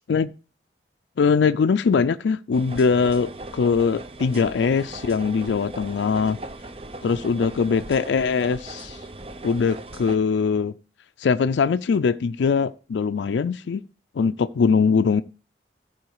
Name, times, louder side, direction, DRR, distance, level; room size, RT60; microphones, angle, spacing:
voice 1, 1.2-6.4 7.0-9.0 9.4-10.7 11.2-13.8 14.2-15.2, left 5 dB, 80° left, 0.4 m, -22 dB
sound 1, 2.5-10.2, right 2 dB, 30° right, 0.6 m, -38 dB
13.5 x 4.6 x 4.7 m
head